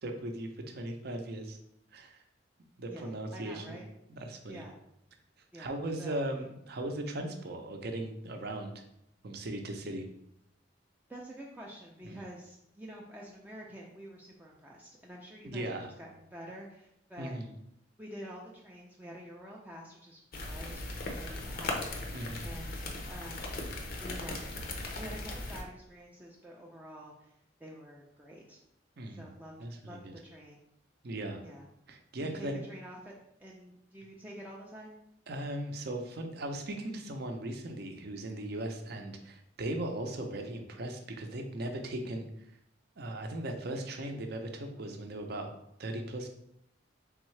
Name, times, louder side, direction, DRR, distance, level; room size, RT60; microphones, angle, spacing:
voice 1, 0.0-1.6 1.9-2.2 2.8-3.8 4.1-4.6 5.6-8.7 9.2-10.1 12.0-12.2 15.4-15.9 17.2-17.5 22.1-22.5 29.0-29.3 29.6-30.1 31.0-31.4 31.9-32.6 35.3-42.6 43.0-45.5 45.8-46.3, right 1 dB, 55° right, 4 dB, 0.6 m, -38 dB
voice 2, 2.9-3.9 4.5-4.7 5.5-5.7 6.0-6.2 11.1-15.7 16.0-17.4 18.0-20.2 20.5-22.1 22.4-23.5 24.0-27.3 27.6-28.6 29.1-29.5 29.8-30.6 31.4-31.7 32.2-35.0, equal, 10° right, -3 dB, 0.4 m, -48 dB
sound 1, 20.3-25.6, left 2 dB, 50° left, 0.6 m, -38 dB
3.6 x 3.6 x 3.2 m, 0.78 s
head